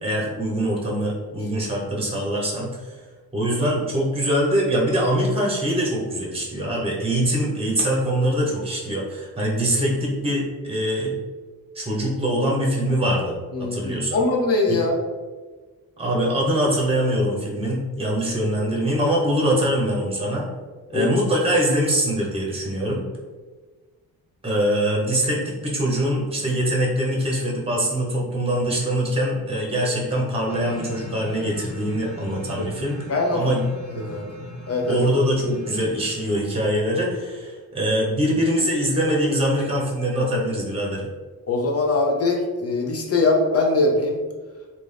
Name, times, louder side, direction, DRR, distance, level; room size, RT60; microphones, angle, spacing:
voice 1, 0.0-2.7 3.3-11.1 11.7-14.2 14.7-14.8 16.0-20.4 20.9-23.1 24.4-33.0 33.3-33.6 34.9-41.1, equal, 15° right, -3 dB, 1.0 m, -23 dB
voice 2, 13.5-15.0 20.9-21.1 32.6-32.7 33.1-33.5 33.9-34.3 34.7-35.0 41.5-44.2, left 2 dB, 40° left, 1 dB, 0.7 m, -22 dB
sound 1, 30.5-36.7, left 1 dB, 80° left, 1.3 m, -39 dB
3.5 x 2.6 x 3.3 m, 1.4 s
cardioid pair, 95°, 36 cm